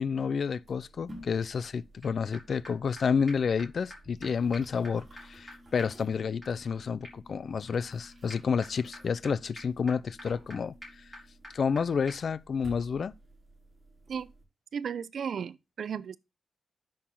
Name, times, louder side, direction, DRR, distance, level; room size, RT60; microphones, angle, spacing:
voice 1, 0.0-11.0 11.5-13.1, left 6 dB, 50° left, 0.6 m, -30 dB
sound 1, 0.6-14.4, right 1 dB, 20° right, 4.2 m, -54 dB
sound 2, 2.0-2.1 2.3-2.4 2.6-2.7 3.0-3.1 3.3-3.4 3.6-3.7 3.9-4.0 4.2-4.3 4.5-11.8 12.1-12.2, left 1 dB, 5° left, 5.6 m, -50 dB
voice 2, 14.7-16.2, right 7 dB, 60° right, 0.6 m, -35 dB
10.0 x 6.6 x 3.8 m
wide cardioid pair, 165°, 0 cm